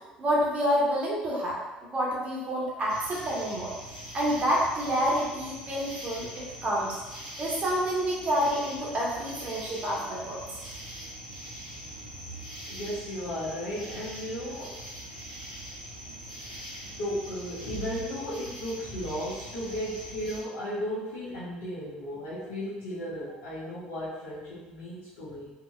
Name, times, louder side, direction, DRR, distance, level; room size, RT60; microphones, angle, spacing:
voice 1, 0.2-7.0 7.4-10.6, equal, 30° right, -5 dB, 1.2 m, -28 dB
sound 1, 2.9-20.4, right 1 dB, 90° left, 0.7 m, -42 dB
voice 2, 12.7-14.8 17.0-25.5, equal, 60° left, -11 dB, 1.0 m, -35 dB
4.2 x 2.8 x 2.3 m, 1.1 s
figure-of-eight pair, 60°, 4 cm